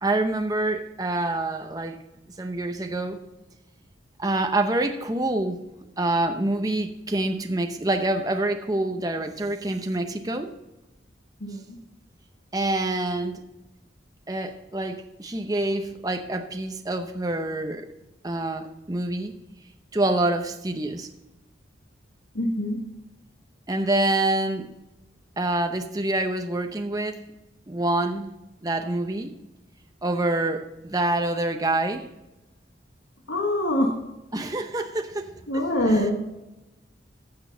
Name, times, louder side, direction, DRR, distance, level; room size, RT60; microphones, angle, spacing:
voice 1, 0.0-2.0 2.4-3.2 4.2-5.6 6.0-10.5 12.5-13.4 14.3-17.9 18.2-19.3 19.9-21.1 23.7-24.7 25.4-27.2 27.7-28.3 28.6-29.3 30.0-32.0 34.3-35.3 35.9-36.1, right 2 dB, 20° right, 5 dB, 0.7 m, -26 dB
voice 2, 11.4-11.8 22.3-22.8 33.3-33.9 35.5-36.1, left 1 dB, 90° left, 1 dB, 1.5 m, -24 dB
15.0 x 6.3 x 3.9 m, 0.97 s
head